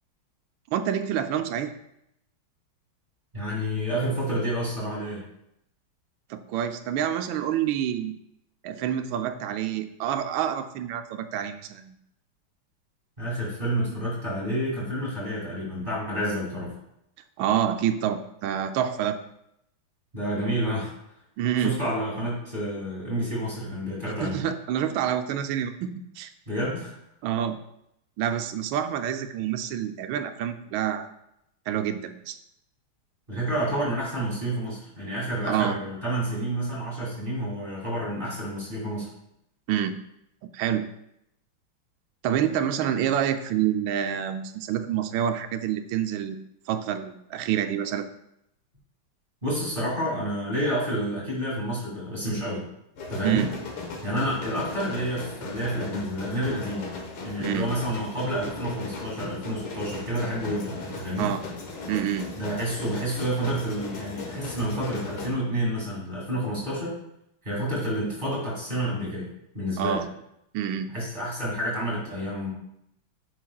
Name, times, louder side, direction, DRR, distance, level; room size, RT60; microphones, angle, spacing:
voice 1, 0.7-1.7 6.3-8.1 8.6-12.0 17.4-19.2 21.4-21.7 24.2-26.3 27.2-27.6 28.2-31.1 31.7-32.4 35.4-35.8 39.7-39.9 40.5-40.9 42.2-46.4 46.7-48.1 53.2-53.5 57.4-57.7 61.2-61.4 61.9-62.3 69.8-70.1 70.5-70.9, right 10 dB, 75° right, 7 dB, 1.3 m, -27 dB
voice 2, 3.3-5.2 13.2-16.7 20.1-20.9 21.6-24.4 26.5-26.9 33.3-39.1 49.4-52.6 53.1-53.5 54.0-56.8 57.2-61.3 62.4-67.0 67.4-69.3 69.5-70.0 70.9-72.5, equal, 25° right, -6 dB, 2.5 m, -29 dB
sound 1, 53.0-65.3, left 3 dB, 80° left, 2.1 m, -37 dB
9.2 x 5.9 x 2.3 m, 0.79 s
omnidirectional pair, 2.3 m